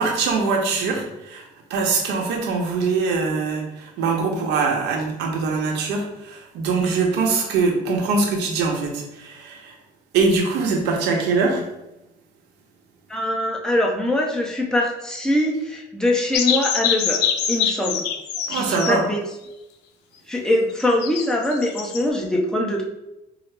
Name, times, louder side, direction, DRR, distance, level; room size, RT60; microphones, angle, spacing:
voice 1, 0.0-9.7 10.1-11.6 18.5-19.0, right 4 dB, 85° right, 1 dB, 0.8 m, -23 dB
voice 2, 13.1-17.2 17.5-18.1 18.5-19.4 20.3-22.8, left 1 dB, 5° left, -1 dB, 0.7 m, -23 dB
sound 1, 16.3-18.9 20.8-22.0, left 8 dB, 85° left, 0.4 m, -24 dB
4.7 x 2.0 x 3.2 m, 0.92 s
cardioid pair, 110°, 17 cm